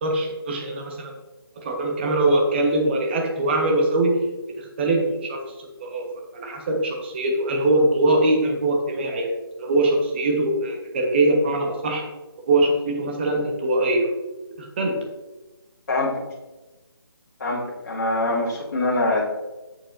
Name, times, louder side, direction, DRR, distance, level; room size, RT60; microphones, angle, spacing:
voice 1, 0.0-1.1 1.6-4.3 4.6-5.4 5.8-6.1 6.3-9.3 9.6-12.1 12.5-14.1 14.6-15.0, right 2 dB, 25° right, 1 dB, 1.3 m, -22 dB
voice 2, 15.9-16.2 17.4-19.3, left 2 dB, 45° left, -5 dB, 2.7 m, -24 dB
8.9 x 7.4 x 2.7 m, 1.1 s
figure-of-eight pair, 160°, 13 cm